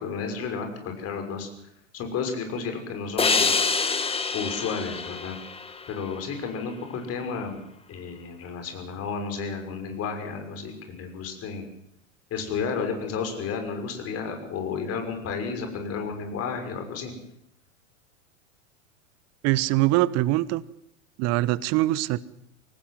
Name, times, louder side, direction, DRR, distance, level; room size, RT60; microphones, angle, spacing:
voice 1, 0.0-1.5 1.9-3.5 4.3-5.4 5.9-7.6 7.9-11.7 12.3-17.1, left 5 dB, 35° left, 5 dB, 6.3 m, -32 dB
sound 1, 3.2-6.5, left 4 dB, 15° left, 2.0 m, -26 dB
voice 2, 19.4-20.6 21.2-22.2, right 17 dB, 40° right, 19 dB, 1.1 m, -23 dB
24.0 x 18.5 x 7.8 m, 0.73 s
figure-of-eight pair, 90°, 40 cm